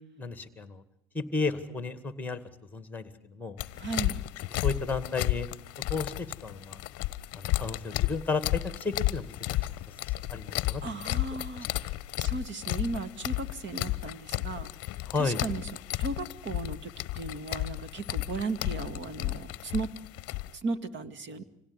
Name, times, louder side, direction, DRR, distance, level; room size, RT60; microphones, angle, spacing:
voice 1, 0.2-0.8 1.1-2.4 2.7-3.6 4.5-5.5 5.9-6.8 7.3-9.3 10.3-10.8 11.5-11.7 15.1-15.4, left 4 dB, 5° left, 12 dB, 2.1 m, -33 dB
sound 1, 3.6-20.5, left 18 dB, 40° left, 1.1 m, -33 dB
voice 2, 3.8-4.2 10.8-11.7 12.2-14.7 15.2-15.6 16.0-16.9 17.2-19.9 20.6-21.4, right 3 dB, 30° right, 13 dB, 1.9 m, -35 dB
26.0 x 17.0 x 9.8 m, 0.77 s
supercardioid pair, 115°, 38 cm